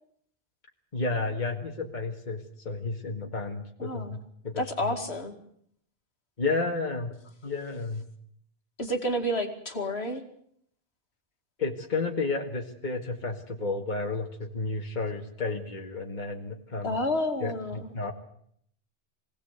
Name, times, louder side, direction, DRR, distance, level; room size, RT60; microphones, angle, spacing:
voice 1, 0.9-4.2 4.4-4.9 6.4-7.1 7.4-8.0 11.6-17.0 17.4-18.1, left 3 dB, 40° left, 2 dB, 2.1 m, -32 dB
voice 2, 3.8-4.2 4.6-5.3 8.8-10.2 16.8-17.9, left 1 dB, 65° left, 4 dB, 2.6 m, -30 dB
24.5 x 17.5 x 8.2 m, 0.69 s
omnidirectional pair, 1.1 m